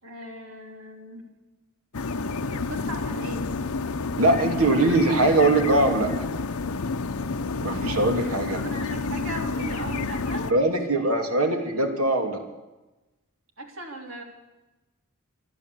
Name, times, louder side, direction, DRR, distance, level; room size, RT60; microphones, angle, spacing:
voice 1, 0.0-1.3 2.5-3.5 8.6-10.7 11.0-11.9 13.6-14.2, right 1 dB, 65° right, 2 dB, 3.8 m, -38 dB
sound 1, 1.9-10.5, left 3 dB, 90° left, 0.8 m, -29 dB
voice 2, 4.2-6.2 7.6-8.6 10.5-12.4, right 2 dB, 90° right, 3 dB, 2.8 m, -22 dB
26.5 x 12.0 x 8.3 m, 1.1 s
head